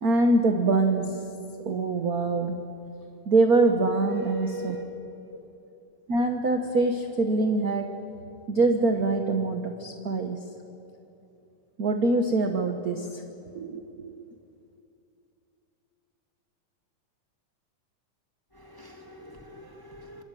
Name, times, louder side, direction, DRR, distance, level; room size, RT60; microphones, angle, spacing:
voice 1, 0.0-1.2 1.6-2.6 3.3-4.8 6.1-7.9 8.5-10.4 11.8-13.2 13.5-14.2, right 2 dB, 50° right, 5 dB, 1.0 m, -24 dB
voice 2, 4.0-4.9 18.5-20.2, right 2 dB, 10° left, 2 dB, 2.0 m, -41 dB
26.5 x 24.0 x 9.2 m, 2.7 s
omnidirectional pair, 3.5 m